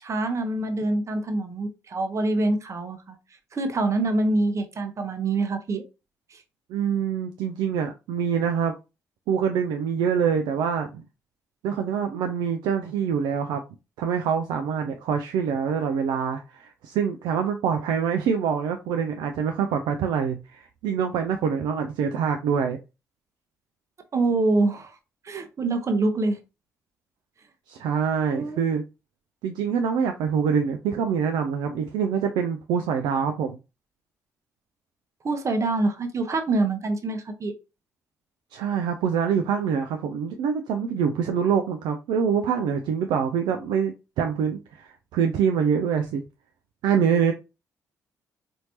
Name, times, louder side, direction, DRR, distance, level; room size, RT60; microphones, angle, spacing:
voice 1, 0.0-3.2 3.5-5.8 6.3-6.4 24.1-25.0 25.2-26.4 28.3-28.7 35.2-37.5, right 2 dB, 35° right, 0.8 m, -25 dB
voice 2, 6.7-8.8 9.3-11.0 11.6-13.6 14.0-22.8 27.7-28.8 29.4-33.6 38.5-46.2 46.8-47.3, right 7 dB, 55° right, 0.4 m, -25 dB
4.2 x 2.6 x 2.8 m
figure-of-eight pair, 40°, 9 cm